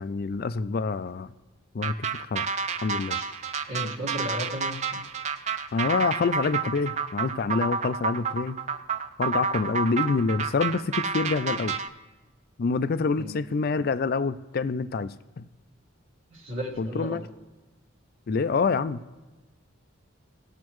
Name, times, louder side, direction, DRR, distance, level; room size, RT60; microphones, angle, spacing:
voice 1, 0.0-1.3 1.7-2.5 2.8-3.2 5.7-8.6 9.2-11.7 12.6-15.5 16.8-17.2 18.3-19.0, left 4 dB, 45° left, 13 dB, 0.4 m, -27 dB
sound 1, 1.8-11.9, right 5 dB, 35° right, 0.4 m, -30 dB
voice 2, 3.7-5.0 13.2-13.4 16.3-17.2, equal, 65° right, -4 dB, 1.8 m, -34 dB
17.5 x 7.3 x 3.1 m, 1.2 s
head